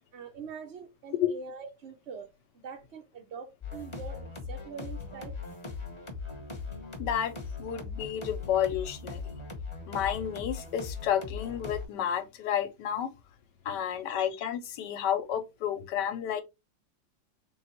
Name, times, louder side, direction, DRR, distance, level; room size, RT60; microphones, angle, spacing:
voice 1, 0.1-5.4 6.2-6.4 13.9-14.0, right 5 dB, 85° right, 0.6 m, -44 dB
sound 1, 3.6-11.8, left 4 dB, 25° left, 0.7 m, -39 dB
voice 2, 7.0-7.3 7.6-9.2 9.9-13.1 13.6-16.4, left 9 dB, 75° left, 1.1 m, -31 dB
4.0 x 2.3 x 4.2 m
omnidirectional pair, 2.0 m